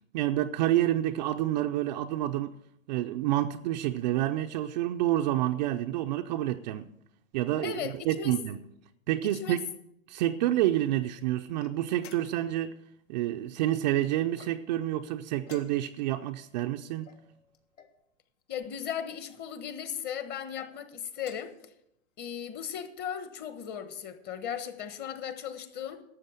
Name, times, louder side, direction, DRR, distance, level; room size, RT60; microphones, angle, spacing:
voice 1, 0.1-2.5 2.9-6.9 7.3-8.6 9.1-9.6 10.1-12.8 13.1-17.1, right 13 dB, 35° right, 0.5 m, -28 dB
voice 2, 7.6-8.3 9.3-9.6 18.5-21.5 22.2-26.0, left 8 dB, 25° left, 1.2 m, -37 dB
sound 1, 11.5-12.6 14.3-14.9 15.4-16.1 17.0-18.0 18.9-19.4 20.4-20.7 21.2-21.6, left 8 dB, 65° left, 1.6 m, -53 dB
12.5 x 7.6 x 7.6 m
hypercardioid pair, 130°, 39 cm